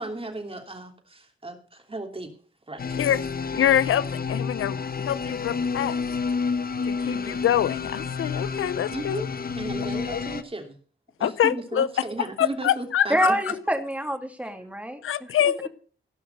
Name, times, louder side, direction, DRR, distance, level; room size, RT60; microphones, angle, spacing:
voice 1, 0.0-2.3 2.7-3.1 7.0-7.4 8.9-9.3 9.5-10.7 11.2-13.4, right 2 dB, 25° right, 4 dB, 3.0 m, -35 dB
sound 1, 2.8-10.4, left 5 dB, 45° left, 1.0 m, -30 dB
voice 2, 3.5-6.0 6.8-9.3 10.1-10.2 11.2-11.9 12.4-13.3 15.0-15.7, left 10 dB, 85° left, 17 dB, 0.5 m, -25 dB
voice 3, 13.1-15.7, right 1 dB, 5° right, 6 dB, 2.4 m, -27 dB
17.5 x 5.8 x 6.7 m, 0.43 s
cardioid pair, 60°, 21 cm